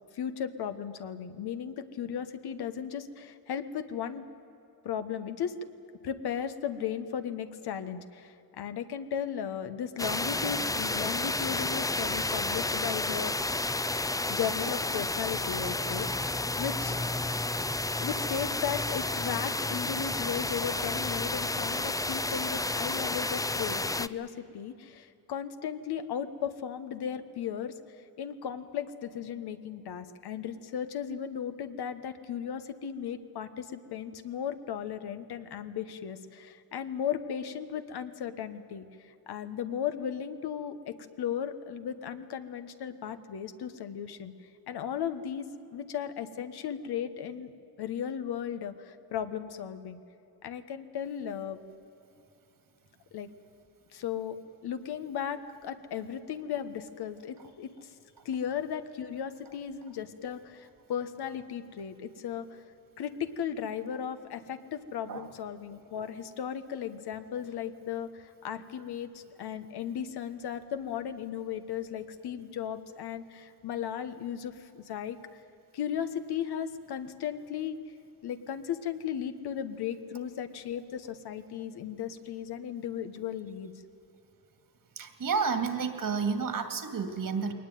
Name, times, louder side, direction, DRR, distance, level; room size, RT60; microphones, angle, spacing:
voice 1, 0.1-4.2 4.8-5.6 6.0-13.3 14.3-17.0 17.9-27.7 28.2-44.3 44.7-47.5 47.8-50.0 50.4-51.6 53.1-53.3 53.9-54.4 54.6-57.9 58.2-62.6 63.0-75.4 75.7-77.8 78.2-83.7, left 8 dB, 85° left, 9 dB, 1.3 m, -36 dB
sound 1, 10.0-24.1, left 2 dB, 10° left, 0.5 m, -31 dB
voice 2, 85.0-87.5, right 5 dB, 60° right, 8 dB, 2.4 m, -30 dB
21.5 x 19.5 x 9.3 m, 3.0 s
cardioid pair, 95°, 38 cm